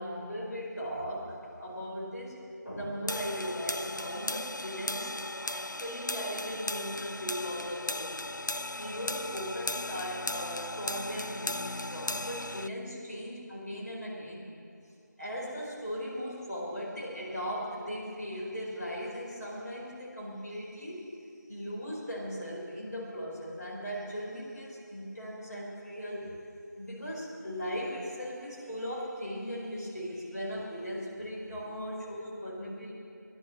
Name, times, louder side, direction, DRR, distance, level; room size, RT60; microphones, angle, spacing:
voice 1, 0.0-2.4 2.6-14.4 15.2-21.1 21.5-26.3 26.8-32.9, equal, 60° left, -4 dB, 4.8 m, -38 dB
sound 1, 3.1-12.7, left 2 dB, 75° left, 0.5 m, -36 dB
19.0 x 11.5 x 6.4 m, 2.6 s
figure-of-eight pair, 180°, 10 cm